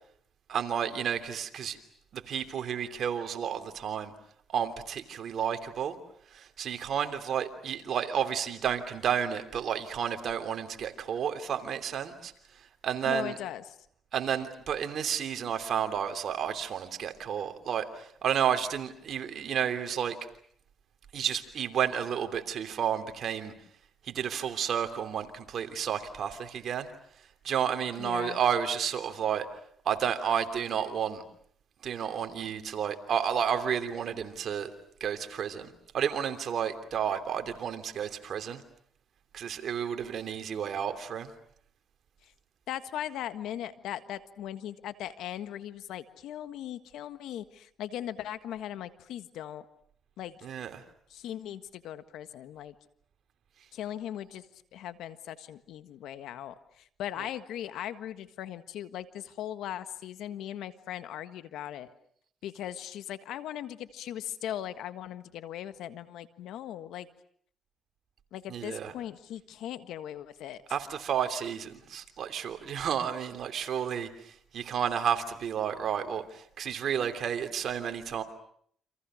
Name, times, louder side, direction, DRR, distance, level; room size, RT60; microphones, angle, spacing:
voice 1, 0.5-1.8 2.1-4.1 4.5-6.0 6.3-12.3 12.8-13.4 14.1-20.2 21.1-23.5 24.0-26.9 27.4-29.5 29.8-31.2 31.8-34.7 35.0-38.6 39.3-41.3 50.4-50.8 57.2-57.3 68.5-68.9 70.7-78.2, right 8 dB, 65° right, 7 dB, 3.0 m, -31 dB
voice 2, 13.0-13.6 28.0-28.4 42.2-42.3 42.7-49.6 50.2-50.4 51.1-52.7 53.7-54.5 54.7-61.9 62.4-67.1 68.3-70.6, left 11 dB, 85° left, 11 dB, 1.6 m, -39 dB
29.5 x 27.0 x 6.4 m, 0.63 s
cardioid pair, 90°, 0 cm